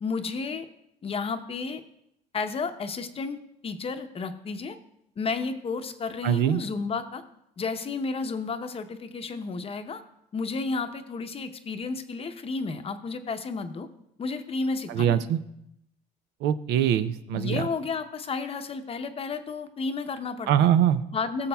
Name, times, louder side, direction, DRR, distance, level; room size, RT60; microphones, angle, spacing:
voice 1, 0.0-0.7 1.0-1.8 2.3-3.4 3.6-4.8 5.2-7.2 7.6-10.0 10.3-13.9 14.2-15.2 17.3-20.7 21.1-21.5, left 4 dB, 35° left, 8 dB, 0.7 m, -32 dB
voice 2, 6.2-6.6 14.9-15.4 16.4-17.7 20.5-21.0, right 10 dB, 85° right, 12 dB, 0.5 m, -23 dB
19.0 x 7.1 x 2.3 m, 0.78 s
cardioid pair, 110°, 17 cm